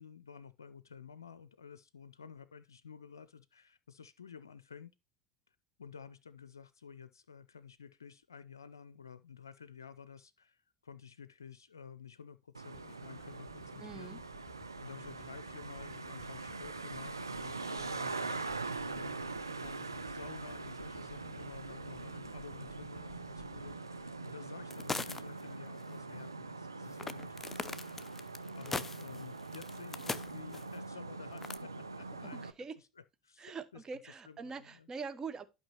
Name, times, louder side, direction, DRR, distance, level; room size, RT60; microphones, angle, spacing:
voice 1, 0.0-4.9 5.5-14.2 14.8-28.0 28.5-32.4 32.8-32.9 33.2-34.9, left 6 dB, 80° left, 0.4 m, -52 dB
Traffic noise roadway noise, 12.5-32.5, right 3 dB, 90° right, 0.5 m, -43 dB
sound 1, 12.7-24.9 25.5-25.6, left 5 dB, 35° left, 1.7 m, -58 dB
voice 2, 13.8-14.2 32.3-32.7 33.4-35.5, right 5 dB, 30° right, 1.2 m, -43 dB
sound 2, 24.7-25.4 25.7-25.8 27.0-30.7 31.4-31.6, left 3 dB, 15° left, 0.7 m, -40 dB
11.5 x 5.5 x 2.8 m
figure-of-eight pair, 70°, 2 cm